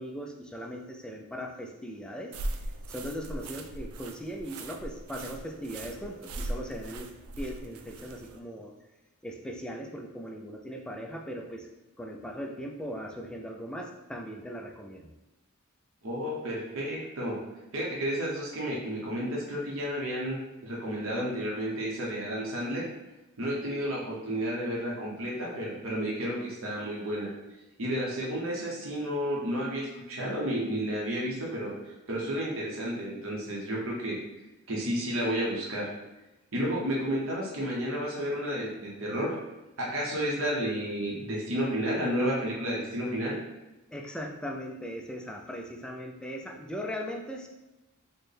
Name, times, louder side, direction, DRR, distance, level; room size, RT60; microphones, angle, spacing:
voice 1, 0.0-2.3 2.9-7.1 7.4-8.7 9.2-11.7 12.0-15.1 43.9-47.5, equal, 5° left, 1 dB, 0.3 m, -39 dB
sound 1, 2.3-8.4, right 1 dB, 85° right, 0.4 m, -39 dB
voice 2, 16.0-17.4 17.7-20.4 20.6-22.8 23.4-27.3 27.8-31.7 32.1-34.2 34.7-35.9 36.5-39.4 39.8-43.4, equal, 65° right, -4 dB, 0.9 m, -31 dB
4.3 x 2.2 x 3.3 m, 1.0 s
head